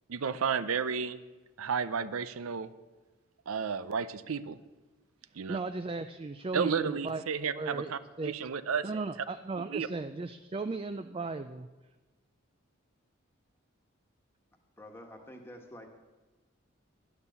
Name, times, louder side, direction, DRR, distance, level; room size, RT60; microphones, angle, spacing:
voice 1, 0.1-1.2 1.6-2.7 3.5-4.6 5.4-5.6 6.5-9.1 9.7-9.9, right 6 dB, 85° right, 14 dB, 0.6 m, -32 dB
voice 2, 5.5-7.2 7.6-8.3 8.8-11.7, right 3 dB, 25° right, 9 dB, 0.3 m, -36 dB
voice 3, 14.7-15.9, left 1 dB, 10° left, 3 dB, 1.3 m, -48 dB
11.5 x 9.7 x 6.9 m, 1.2 s
head